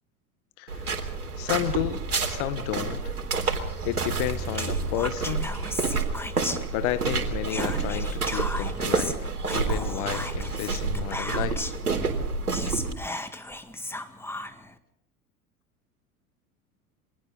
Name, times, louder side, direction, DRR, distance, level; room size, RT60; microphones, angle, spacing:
sound 1, 0.7-12.9, right 4 dB, 85° right, 3.8 m, -29 dB
voice 1, 1.4-3.0 3.8-5.5 6.7-11.7, left 14 dB, 55° left, 13 dB, 1.7 m, -31 dB
Whispering, 4.5-7.1 7.4-11.9 12.2-12.3 12.5-14.7, left 1 dB, 5° left, 1.8 m, -36 dB
29.0 x 24.0 x 4.0 m, 0.67 s
figure-of-eight pair, 80°, 44 cm